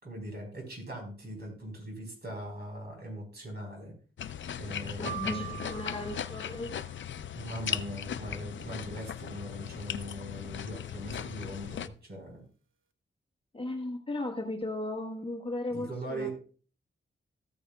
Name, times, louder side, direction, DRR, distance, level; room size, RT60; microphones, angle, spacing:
voice 1, 0.0-3.9 4.5-5.6 7.3-12.4 15.7-16.3, right 1 dB, 50° right, 1 dB, 4.5 m, -40 dB
sound 1, 4.2-11.9, left 9 dB, 65° left, 0.5 m, -38 dB
voice 2, 5.0-6.7 13.5-16.3, left 2 dB, 25° left, 2 dB, 1.3 m, -36 dB
sound 2, 5.1-7.2, right 12 dB, 80° right, 1.0 m, -43 dB
14.0 x 9.0 x 2.3 m, 0.39 s
wide cardioid pair, 120°, 21 cm